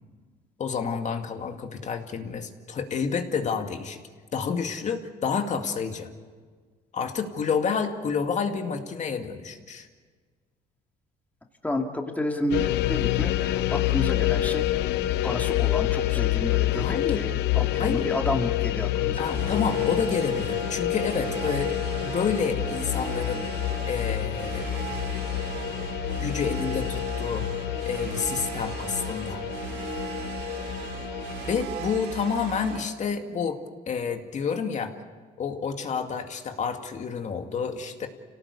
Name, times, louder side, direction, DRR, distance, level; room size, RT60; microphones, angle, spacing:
voice 1, 0.6-4.0 4.3-6.1 6.9-9.9 16.7-17.2 17.8-18.1 19.2-21.8 22.0-23.5 23.9-24.6 26.1-27.5 27.9-29.4 31.5-33.6 33.9-34.9 35.4-38.1, left 6 dB, 45° left, 5 dB, 2.2 m, -29 dB
voice 2, 11.6-14.9 15.2-19.3, left 1 dB, 10° left, 2 dB, 2.3 m, -31 dB
sound 1, 12.5-31.5, left 15 dB, 80° left, 0.8 m, -28 dB
sound 2, 19.1-32.9, right 5 dB, 75° right, 2.9 m, -36 dB
27.5 x 18.0 x 8.4 m, 1.5 s
cardioid pair, 110°, 17 cm